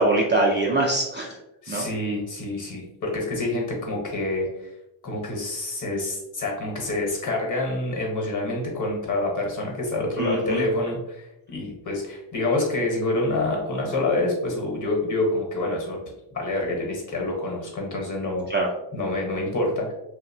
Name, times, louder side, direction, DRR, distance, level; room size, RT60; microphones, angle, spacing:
voice 1, 0.0-1.4 1.7-1.9 10.2-10.7 18.5-18.7, right 2 dB, 25° right, -3 dB, 0.3 m, -23 dB
voice 2, 1.6-4.7 5.0-16.0 16.3-18.5 18.9-19.9, left 2 dB, 40° left, 0 dB, 1.0 m, -27 dB
2.7 x 2.0 x 2.6 m, 0.89 s
cardioid pair, 100°, 45 cm